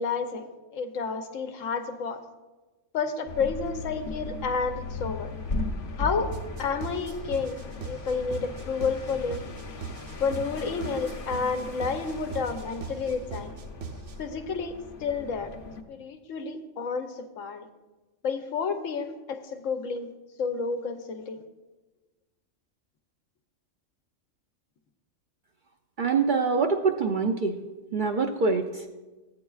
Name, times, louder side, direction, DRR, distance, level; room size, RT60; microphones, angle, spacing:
voice 1, 0.0-2.2 2.9-5.4 6.0-6.3 6.6-9.5 10.2-13.5 14.2-15.6 15.9-17.7 18.2-20.1 20.4-21.4, left 5 dB, 85° left, 7 dB, 1.1 m, -30 dB
sound 1, 3.3-15.8, left 2 dB, 50° left, 0.9 m, -38 dB
sound 2, 6.3-14.3, right 4 dB, 75° right, 1.1 m, -40 dB
voice 2, 26.0-27.6 27.9-28.9, right 4 dB, 60° right, 3 dB, 0.5 m, -25 dB
14.5 x 8.6 x 2.3 m, 1.2 s
omnidirectional pair, 1.3 m